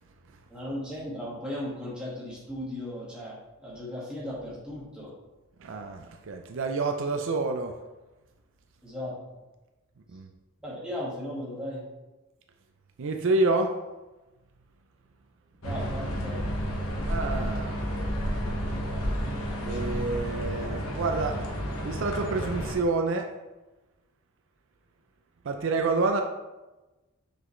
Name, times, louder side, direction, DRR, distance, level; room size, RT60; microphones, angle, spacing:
voice 1, 0.5-5.1 8.8-9.1 10.6-11.8 15.6-16.4, left 1 dB, 5° right, -7 dB, 1.8 m, -36 dB
voice 2, 5.6-7.8 10.1-10.3 13.0-13.7 17.1-17.7 19.6-21.4 21.8-23.3 25.4-26.2, right 3 dB, 60° right, 4 dB, 0.5 m, -28 dB
sound 1, 15.6-22.8, equal, 80° left, 1.2 m, -31 dB
5.9 x 5.2 x 3.2 m, 1.1 s
head